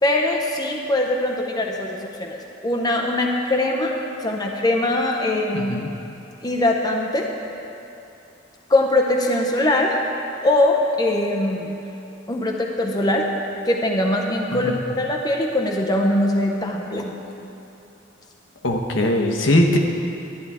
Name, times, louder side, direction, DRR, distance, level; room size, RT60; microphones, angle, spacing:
voice 1, 0.0-5.7 6.4-7.3 8.7-10.0 10.4-11.7 12.3-13.3 13.6-17.2, left 1 dB, 20° left, 0 dB, 0.7 m, -22 dB
voice 2, 5.5-5.9 14.5-14.8 18.6-19.8, left 1 dB, 75° left, 2 dB, 0.9 m, -20 dB
11.0 x 10.5 x 3.5 m, 2.9 s
head